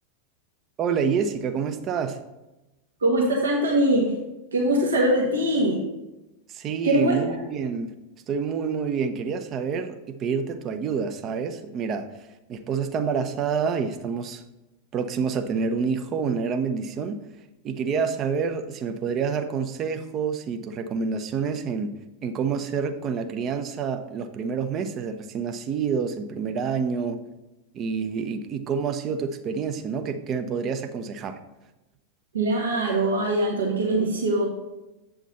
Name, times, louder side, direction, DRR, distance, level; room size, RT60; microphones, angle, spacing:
voice 1, 0.8-2.2 6.5-7.9 8.3-12.1 12.5-14.4 14.9-17.2 17.6-22.0 22.2-27.2 27.7-31.4, right 6 dB, 30° right, 8 dB, 0.7 m, -28 dB
voice 2, 3.0-4.1 4.5-5.8 6.8-7.2 32.3-34.4, right 1 dB, 70° right, -1 dB, 1.6 m, -22 dB
8.2 x 5.9 x 4.1 m, 1.0 s
figure-of-eight pair, 90°, 0 cm